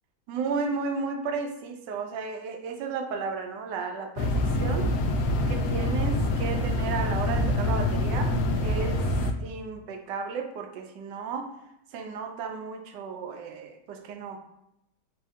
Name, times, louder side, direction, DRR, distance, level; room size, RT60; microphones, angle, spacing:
voice 1, 0.3-4.9 5.5-8.3 8.6-9.1 9.4-11.5 11.9-14.4, right 5 dB, 80° right, 5 dB, 1.2 m, -33 dB
sound 1, 4.2-9.3, left 1 dB, 70° left, 1.0 m, -26 dB
4.6 x 2.6 x 3.4 m, 0.85 s
omnidirectional pair, 1.9 m